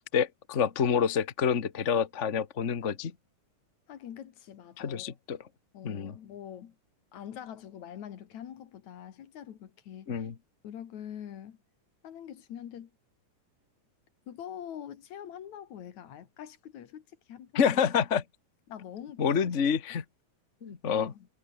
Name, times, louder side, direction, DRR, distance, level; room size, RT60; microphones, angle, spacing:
voice 1, 0.1-3.1 4.8-5.4 5.8-6.1 10.1-10.3 17.5-18.2 19.2-20.0 20.6-21.1, left 7 dB, 45° left, 0.9 m, -27 dB
voice 2, 3.9-5.1 5.7-6.7 7.1-10.3 10.6-11.6 12.0-12.9 14.3-17.8 18.7-19.5 19.9-20.0 20.9-21.3, left 9 dB, 65° left, 2.9 m, -44 dB
omnidirectional pair, 3.7 m